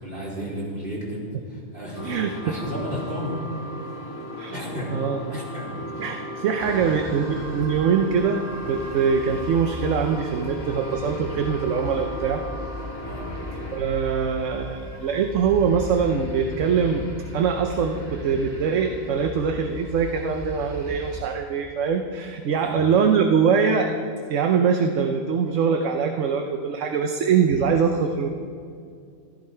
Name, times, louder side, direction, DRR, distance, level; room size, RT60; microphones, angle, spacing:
voice 1, 0.0-3.5 3.8-3.9 4.5-5.0 5.3-5.8 6.6-7.0 13.0-13.3 22.5-22.7, equal, 40° right, -6 dB, 3.7 m, -33 dB
sound 1, 1.9-13.8, left 1 dB, 75° left, 1.6 m, -36 dB
voice 2, 2.0-2.5 4.4-4.5 4.9-5.4 6.0-12.4 13.7-17.0 17.3-23.9 24.3-28.3, right 6 dB, 70° right, 5 dB, 1.1 m, -23 dB
sound 2, 6.6-21.2, left 1 dB, 20° right, 1.8 m, -37 dB
14.5 x 13.0 x 4.4 m, 2.3 s
omnidirectional pair, 1.4 m